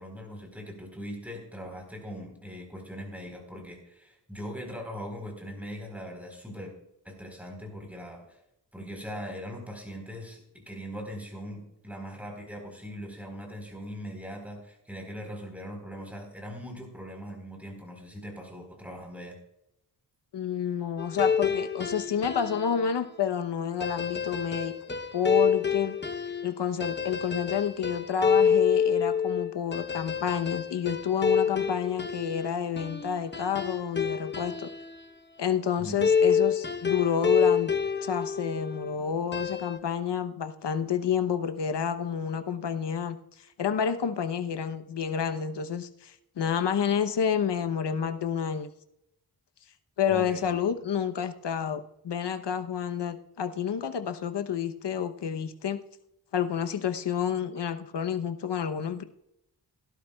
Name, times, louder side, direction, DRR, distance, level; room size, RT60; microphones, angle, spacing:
voice 1, 0.0-6.7 7.0-8.4 8.7-19.4 35.8-36.2 50.1-50.6, equal, 5° right, 2 dB, 4.1 m, -40 dB
voice 2, 20.3-24.7 25.1-26.0 26.4-34.7 35.4-37.7 38.0-43.2 43.6-48.7 50.0-55.8 56.3-59.0, left 8 dB, 70° left, 9 dB, 0.9 m, -29 dB
sound 1, 21.0-22.8 23.8-35.0 36.0-38.9 39.3-39.8, left 6 dB, 25° left, 0.9 m, -27 dB
17.0 x 11.5 x 2.3 m, 0.80 s
wide cardioid pair, 85°, 43 cm